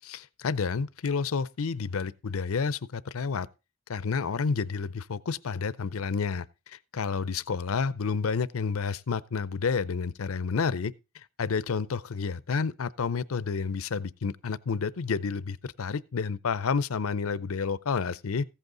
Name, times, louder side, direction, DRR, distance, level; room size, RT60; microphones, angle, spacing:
voice 1, 0.0-3.5 3.9-18.4, left 5 dB, 75° left, 0.6 m, -30 dB
15.0 x 8.1 x 3.8 m
head